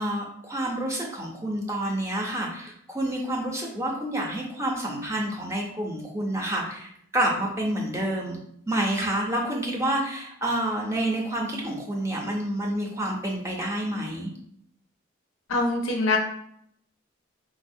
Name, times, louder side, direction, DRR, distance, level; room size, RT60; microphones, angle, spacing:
voice 1, 0.0-8.4 8.7-14.3, right 1 dB, 15° right, -1 dB, 0.5 m, -28 dB
voice 2, 15.5-16.2, left 2 dB, 85° left, 2 dB, 0.6 m, -23 dB
4.0 x 2.0 x 2.6 m, 0.72 s
head